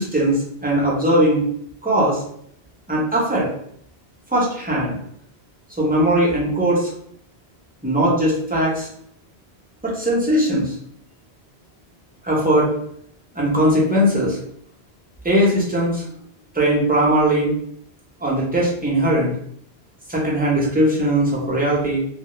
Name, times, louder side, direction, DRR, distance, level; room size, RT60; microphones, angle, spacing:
voice 1, 0.0-1.4 1.8-2.2 2.9-3.5 4.3-5.0 5.8-6.9 7.8-8.9 9.8-10.7 12.2-12.7 13.3-14.4 15.2-16.0 16.5-17.5 18.2-19.3 20.1-22.0, right 1 dB, 10° right, -5 dB, 0.6 m, -19 dB
2.3 x 2.0 x 2.9 m, 0.67 s
omnidirectional pair, 1.1 m